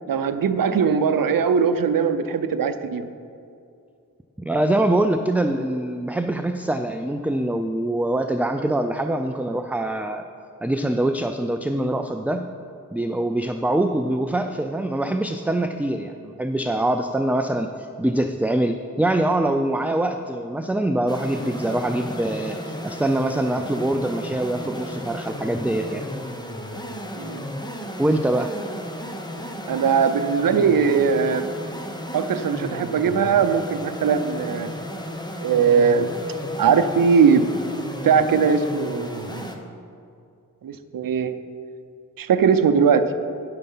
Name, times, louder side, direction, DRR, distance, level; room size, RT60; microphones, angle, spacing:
voice 1, 0.1-3.1 27.2-27.4 29.7-31.5 32.1-34.7 35.4-36.1 36.6-37.7 38.0-39.5 40.6-41.3 42.2-43.0, right 6 dB, 75° right, 9 dB, 0.6 m, -20 dB
voice 2, 4.5-10.2 10.6-12.5 12.9-17.7 18.0-26.0 28.0-28.5, right 1 dB, 5° right, 6 dB, 0.4 m, -24 dB
sound 1, 21.1-39.6, left 1 dB, 10° left, 1.0 m, -34 dB
10.0 x 6.7 x 5.5 m, 2.5 s
cardioid pair, 70°, 34 cm